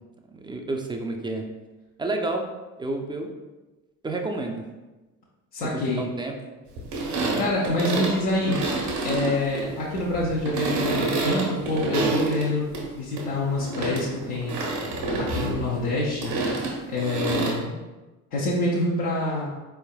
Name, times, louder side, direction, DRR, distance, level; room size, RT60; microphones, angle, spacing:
voice 1, 0.3-1.4 2.0-2.4 2.8-3.3 4.0-4.6 5.7-6.3, right 2 dB, 10° right, 3 dB, 0.4 m, -30 dB
voice 2, 5.5-6.1 7.4-8.6 9.0-14.7 15.2-16.4 16.9-17.8 18.3-19.5, left 2 dB, 85° left, -6 dB, 0.8 m, -26 dB
sound 1, 6.8-12.9 13.2-17.5, right 2 dB, 70° right, 1.1 m, -28 dB
4.4 x 3.4 x 2.2 m, 1.1 s
hypercardioid pair, 60°, 44 cm